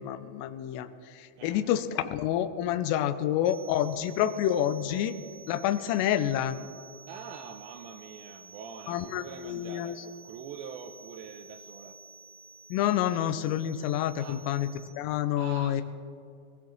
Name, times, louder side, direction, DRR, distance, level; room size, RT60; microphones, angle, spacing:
voice 1, 0.0-5.2 5.5-6.6 8.9-9.9 12.7-14.7 15.0-15.8, left 11 dB, 90° left, 11 dB, 3.3 m, -28 dB
voice 2, 1.4-1.7 3.0-3.1 7.1-12.0 14.2-14.4 15.4-15.8, right 6 dB, 85° right, 6 dB, 2.6 m, -44 dB
sound 1, 3.4-14.9, right 4 dB, 40° right, 3.5 m, -51 dB
21.0 x 17.5 x 3.1 m, 2.4 s
omnidirectional pair, 5.7 m